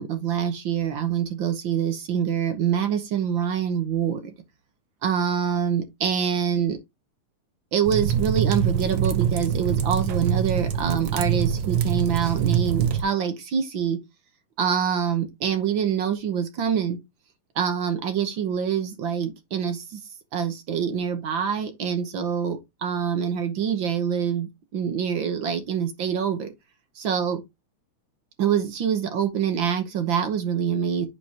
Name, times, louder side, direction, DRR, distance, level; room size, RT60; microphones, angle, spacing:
voice 1, 0.0-4.3 5.0-6.8 7.7-14.0 14.6-17.0 17.5-20.0 20.3-26.5 27.0-27.4 28.4-31.1, right 8 dB, 60° right, 1.3 m, -25 dB
sound 1, 7.8-13.0, right 8 dB, 85° right, 1.0 m, -24 dB
9.1 x 5.3 x 2.9 m
omnidirectional pair, 3.4 m